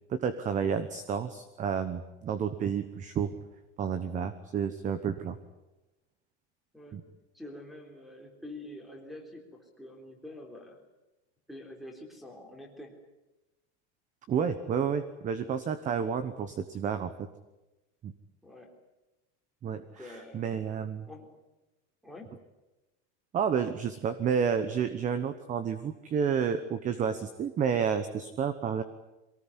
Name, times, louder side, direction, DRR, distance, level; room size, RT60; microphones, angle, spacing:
voice 1, 0.1-3.3 3.8-5.4 6.9-7.0 14.3-17.1 18.0-18.1 19.6-21.1 23.3-28.8, right 7 dB, 20° right, 12 dB, 1.0 m, -30 dB
voice 2, 7.3-10.8 11.5-13.0 18.4-18.7 19.7-20.4 21.1-21.3 22.0-22.4, left 1 dB, ahead, 4 dB, 3.8 m, -46 dB
23.5 x 18.5 x 10.0 m, 1.0 s
supercardioid pair, 165°, 35 cm